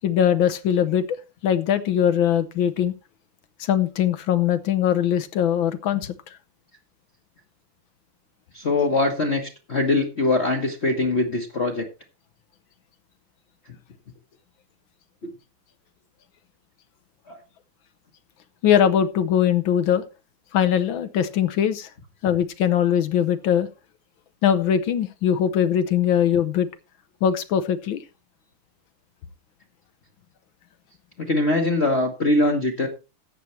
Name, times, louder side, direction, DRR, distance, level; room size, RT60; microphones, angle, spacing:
voice 1, 0.0-1.2 1.4-2.9 3.6-6.1 18.6-20.0 20.5-21.9 22.2-23.7 24.4-26.7 27.2-28.0, left 9 dB, 70° left, 11 dB, 1.5 m, -21 dB
voice 2, 8.5-11.9 17.3-17.4 31.2-32.9, left 2 dB, 35° left, 2 dB, 1.2 m, -22 dB
14.0 x 9.0 x 3.1 m, 0.29 s
omnidirectional pair, 2.4 m